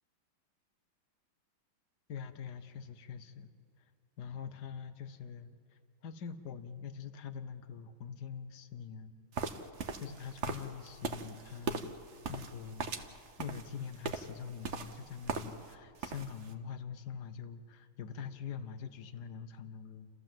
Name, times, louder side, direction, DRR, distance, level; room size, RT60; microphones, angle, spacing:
voice 1, 2.1-3.5 4.2-5.5 6.0-9.1 10.0-11.9 12.3-12.9 13.4-20.1, left 7 dB, 55° left, 11 dB, 1.5 m, -44 dB
sound 1, 9.3-15.7 16.0-16.5, right 5 dB, 45° right, 1.0 m, -40 dB
30.0 x 14.0 x 7.6 m, 2.3 s
omnidirectional pair, 2.3 m